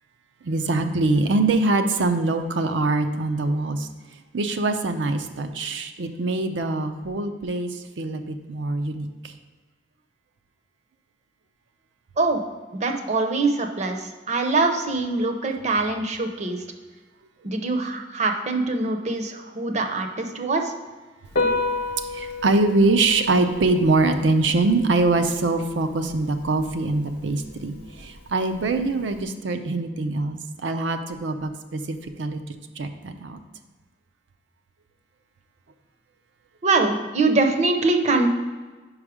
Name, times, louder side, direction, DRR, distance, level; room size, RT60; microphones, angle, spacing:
voice 1, 0.4-3.9 4.3-9.3 22.1-32.4 32.8-33.4, right 2 dB, 80° right, 7 dB, 0.5 m, -23 dB
voice 2, 12.7-16.6 17.4-20.7 36.6-38.3, right 3 dB, 40° right, 5 dB, 0.6 m, -23 dB
Piano, 21.3-29.2, left 3 dB, 60° left, 0.8 m, -32 dB
5.3 x 4.8 x 4.9 m, 1.3 s
head